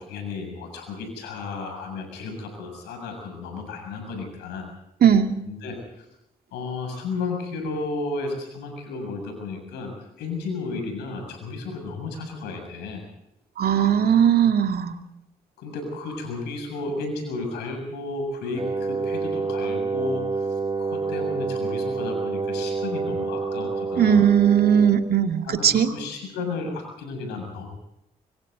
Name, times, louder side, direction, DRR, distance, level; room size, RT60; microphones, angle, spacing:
voice 1, 0.0-4.7 5.5-6.1 6.5-13.0 15.6-20.4 20.8-24.2 25.4-27.7, left 3 dB, 90° left, 4 dB, 7.3 m, -33 dB
voice 2, 5.0-5.3 13.6-14.9 24.0-25.9, right 8 dB, 70° right, 6 dB, 2.3 m, -18 dB
Wind instrument woodwind instrument, 18.5-25.1, right 4 dB, 25° right, 4.7 m, -28 dB
25.5 x 25.5 x 4.0 m, 0.84 s
supercardioid pair, 45°, 17 cm